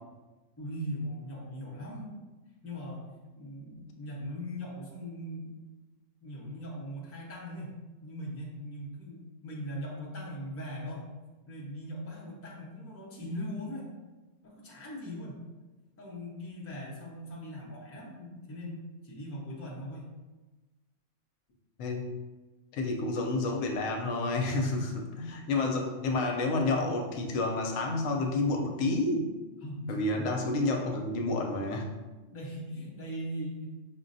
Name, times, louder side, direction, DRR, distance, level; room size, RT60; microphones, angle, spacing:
voice 1, 0.6-2.2 2.6-5.5 6.2-11.1 11.5-13.9 14.4-15.4 16.0-20.1 24.5-24.8 29.6-30.3 30.6-31.1 32.3-33.7, equal, 15° left, -5 dB, 0.6 m, -40 dB
voice 2, 22.7-24.9 25.2-29.3 29.9-31.9, left 2 dB, 85° left, 2 dB, 1.0 m, -29 dB
5.6 x 2.2 x 2.6 m, 1.2 s
omnidirectional pair, 1.3 m